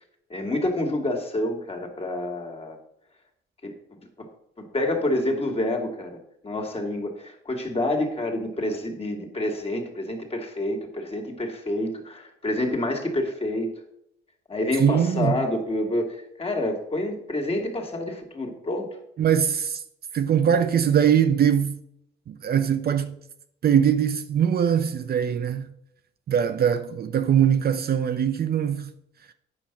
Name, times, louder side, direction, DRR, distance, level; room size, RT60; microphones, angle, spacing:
voice 1, 0.3-2.8 3.6-3.7 4.2-4.3 4.6-6.2 6.4-13.7 14.5-18.9, left 1 dB, 30° left, 2.3 m, -28 dB
voice 2, 14.8-15.4 19.2-19.8 20.1-21.8 22.3-23.2 23.6-25.7 26.3-28.9, right 8 dB, 50° right, 0.7 m, -22 dB
9.2 x 5.5 x 6.0 m
cardioid pair, 90°, 20 cm